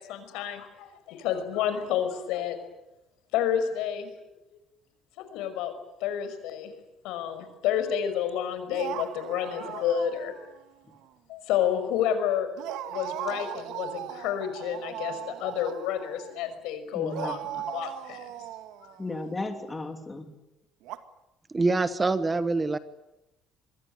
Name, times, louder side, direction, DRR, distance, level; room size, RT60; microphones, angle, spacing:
voice 1, 0.0-2.6 3.3-4.1 4.5-4.6 5.2-5.7 6.0-6.7 7.0-10.3 11.3-12.5 12.8-18.3, left 9 dB, 90° left, 9 dB, 5.5 m, -30 dB
sound 1, 8.7-10.6 10.9-11.0 12.6-16.4 17.1-19.5 20.8-21.0, right 12 dB, 80° right, 2.1 m, -38 dB
voice 2, 16.9-17.6 19.0-20.3, left 2 dB, 10° left, 5 dB, 3.0 m, -35 dB
voice 3, 21.5-22.8, right 3 dB, 15° right, 13 dB, 1.1 m, -25 dB
26.0 x 22.0 x 9.6 m, 0.94 s
cardioid pair, 165°, 0 cm